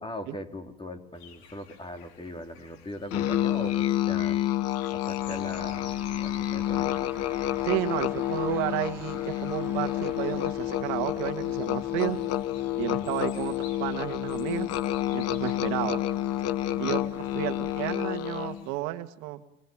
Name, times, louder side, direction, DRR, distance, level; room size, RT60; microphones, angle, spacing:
voice 1, 0.0-4.4 4.9-7.0 13.0-13.1, left 1 dB, 15° left, 5 dB, 4.1 m, -40 dB
sound 1, 1.1-18.8, left 7 dB, 80° left, 4.4 m, -54 dB
Musical instrument, 3.1-18.7, left 13 dB, 50° left, 1.3 m, -29 dB
sound 2, 5.2-17.9, right 2 dB, 5° right, 2.9 m, -49 dB
voice 2, 7.6-12.2 12.8-14.7 15.1-16.0 16.8-19.4, right 16 dB, 65° right, 8 dB, 2.0 m, -32 dB
29.5 x 25.0 x 7.4 m, 0.77 s
supercardioid pair, 95°, 31 cm